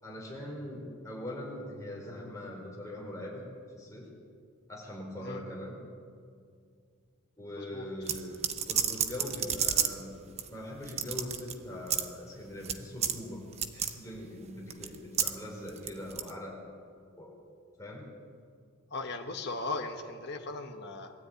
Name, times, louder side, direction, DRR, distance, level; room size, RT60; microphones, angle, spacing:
voice 1, 0.0-3.5 3.7-4.1 4.7-5.8 7.4-8.4 8.7-10.2 10.5-13.4 13.7-16.7 17.2-17.4 17.8-18.0, left 1 dB, 15° left, -3 dB, 5.0 m, -41 dB
voice 2, 7.5-7.9 18.9-21.1, left 3 dB, 50° left, 3 dB, 1.4 m, -38 dB
sound 1, 8.1-10.0 10.4-10.5 10.8-11.5 11.9-12.1 12.6-12.8 13.0-13.2 13.5-13.9 14.7-15.4 15.7-16.3, right 8 dB, 30° right, 0.9 m, -30 dB
21.5 x 13.0 x 9.3 m, 2.2 s
head